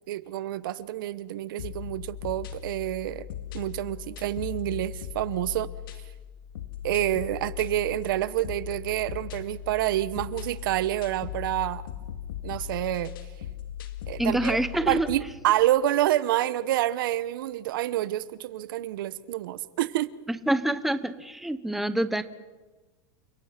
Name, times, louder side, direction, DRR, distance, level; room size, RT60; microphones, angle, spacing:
voice 1, 0.1-3.3 3.5-5.7 6.8-11.8 12.4-13.1 14.1-14.6 14.9-20.1, right 14 dB, 80° right, 17 dB, 0.9 m, -28 dB
sound 1, 1.6-15.3, left 11 dB, 90° left, 2.1 m, -39 dB
voice 2, 14.2-15.1 20.3-22.2, right 1 dB, ahead, 12 dB, 0.9 m, -26 dB
29.5 x 17.5 x 5.9 m, 1.3 s
supercardioid pair, 140°, 11 cm